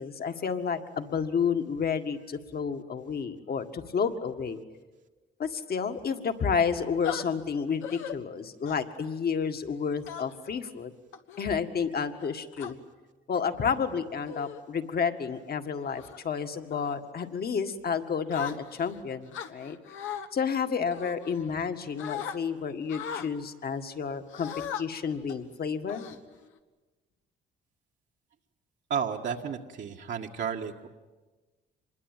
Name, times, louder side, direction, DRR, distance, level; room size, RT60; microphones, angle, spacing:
voice 1, 0.0-4.6 5.4-10.9 11.4-12.8 13.3-19.8 20.3-24.5 24.8-26.0, left 6 dB, 50° left, 7 dB, 1.9 m, -30 dB
sound 1, 7.0-7.2 7.8-8.1 8.7-9.0 10.1-10.5 11.1-11.4 12.1-12.7 13.5-13.8 14.3-14.6 15.1-15.4 15.9-16.2 16.7-17.0 18.3-18.9 19.3-20.3 20.9-21.7 22.0-22.4 22.9-23.3 24.3-24.8 25.3-25.5 25.9-26.6, left 8 dB, 90° left, 1.4 m, -38 dB
voice 2, 28.9-30.9, right 7 dB, 65° right, 0 dB, 1.7 m, -32 dB
25.5 x 21.5 x 9.2 m, 1.2 s
cardioid pair, 90°, 20 cm